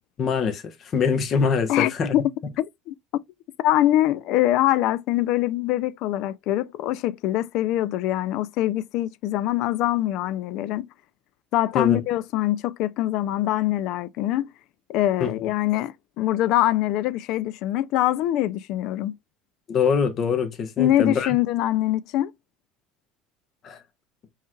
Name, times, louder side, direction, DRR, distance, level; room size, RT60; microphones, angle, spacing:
voice 1, 0.2-2.2 11.7-12.0 15.2-15.3 19.7-21.4 23.6-23.8, left 6 dB, 45° left, 1.1 m, -24 dB
voice 2, 1.7-2.2 2.6-2.9 3.6-10.9 11.5-14.5 14.9-19.2 20.8-22.3, left 14 dB, 65° left, 0.4 m, -23 dB
5.4 x 3.2 x 2.3 m
supercardioid pair, 105°, 0 cm